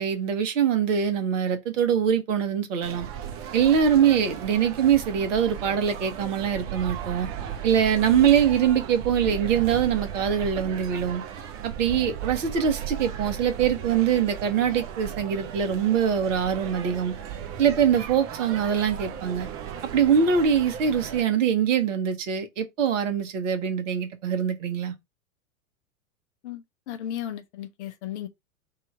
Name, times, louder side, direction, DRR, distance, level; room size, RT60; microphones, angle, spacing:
voice 1, 0.0-3.1 3.5-7.3 7.6-11.2 11.6-17.1 17.6-19.5 19.9-24.9, right 8 dB, 65° right, 1.6 m, -23 dB
sound 1, 2.8-21.2, right 9 dB, 35° right, 1.0 m, -36 dB
voice 2, 26.4-28.3, left 11 dB, 55° left, 1.0 m, -35 dB
3.7 x 2.7 x 4.7 m
hypercardioid pair, 105°, 41 cm